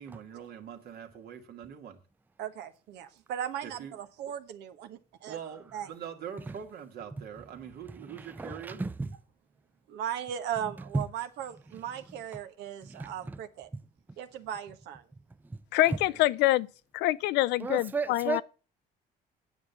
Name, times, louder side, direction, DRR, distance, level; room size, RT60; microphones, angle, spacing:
voice 1, 0.0-2.0 3.6-4.0 5.3-8.8 15.9-16.2, right 8 dB, 65° right, 2.2 m, -43 dB
voice 2, 2.4-5.4 5.7-5.9 9.9-13.7 14.2-15.0 15.7-15.9, right 9 dB, 85° right, 1.3 m, -37 dB
voice 3, 8.1-9.1 10.9-11.0 12.8-13.4 13.7-13.8 15.9-16.0 17.6-18.4, right 3 dB, 10° right, 0.5 m, -33 dB
voice 4, 15.7-16.7 16.9-18.4, left 16 dB, 90° left, 0.5 m, -25 dB
9.6 x 7.4 x 8.2 m
cardioid pair, 110°, 17 cm